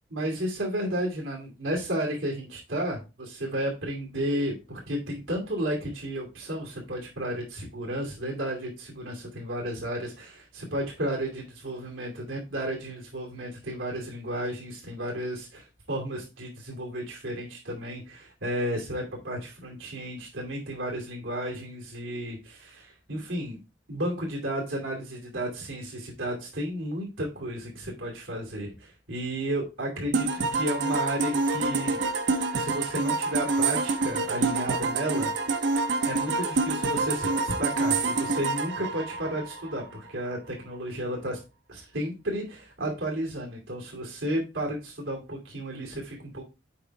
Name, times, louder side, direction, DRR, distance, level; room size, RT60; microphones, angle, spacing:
voice 1, 0.1-23.6 23.9-32.0 32.5-35.5 36.1-41.4 41.7-46.4, equal, 90° right, -1 dB, 2.7 m, -33 dB
sound 1, 30.1-39.8, right 3 dB, 65° right, 0.8 m, -27 dB
7.7 x 4.7 x 4.5 m, 0.29 s
head